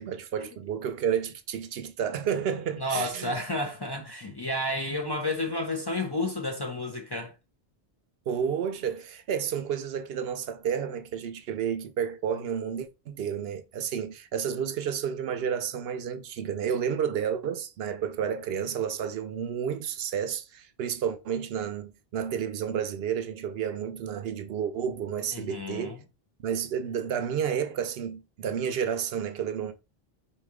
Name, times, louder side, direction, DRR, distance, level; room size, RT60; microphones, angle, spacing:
voice 1, 0.0-3.3 8.3-25.9 26.4-29.7, right 8 dB, 75° right, 0.8 m, -31 dB
voice 2, 2.8-7.4 25.3-26.0, left 1 dB, 30° left, 0.6 m, -31 dB
4.2 x 3.1 x 3.5 m
omnidirectional pair, 1.1 m